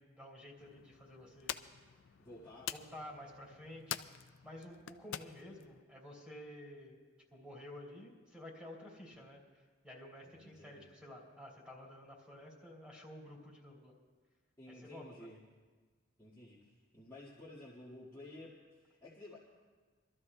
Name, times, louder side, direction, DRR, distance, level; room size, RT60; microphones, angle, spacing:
voice 1, 0.0-1.6 2.7-7.0 7.3-9.4 9.8-13.9 14.7-15.4, left 1 dB, 5° right, -2 dB, 3.0 m, -51 dB
sound 1, 0.6-5.8, left 10 dB, 80° left, 0.4 m, -47 dB
voice 2, 2.2-2.7 10.2-10.9 14.6-15.4 16.2-19.4, left 1 dB, 15° left, -9 dB, 1.7 m, -53 dB
28.5 x 13.5 x 2.3 m, 1.4 s
head